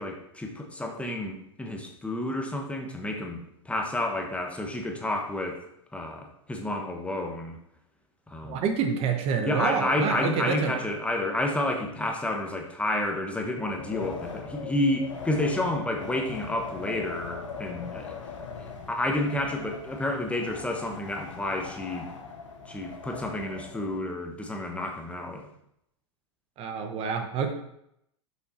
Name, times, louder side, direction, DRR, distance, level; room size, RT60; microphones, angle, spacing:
voice 1, 0.0-5.6 5.9-7.6 8.3-8.6 9.4-18.2 18.6-22.1 22.6-25.5, left 1 dB, 10° left, 3 dB, 1.1 m, -30 dB
voice 2, 8.4-10.8 26.6-27.5, right 6 dB, 40° right, 6 dB, 1.0 m, -28 dB
Wind, 13.6-24.0, left 5 dB, 85° left, 1.3 m, -41 dB
6.3 x 5.5 x 4.3 m, 0.77 s
hypercardioid pair, 100°, 15 cm